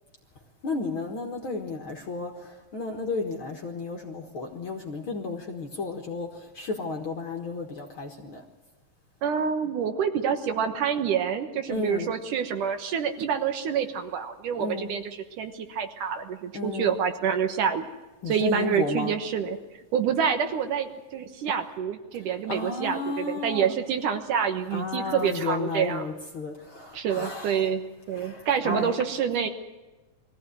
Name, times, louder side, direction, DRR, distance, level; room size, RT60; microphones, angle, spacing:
voice 1, 0.6-8.4 11.7-12.1 14.6-14.9 16.5-17.0 18.2-19.1 22.5-23.7 24.7-27.8 28.1-28.9, left 3 dB, 50° left, 2 dB, 1.8 m, -33 dB
voice 2, 9.2-15.0 15.4-17.8 18.3-19.6 19.9-26.1 26.9-27.8 28.1-29.5, right 7 dB, 70° right, 7 dB, 2.7 m, -27 dB
22.5 x 15.5 x 9.2 m, 1.1 s
omnidirectional pair, 4.0 m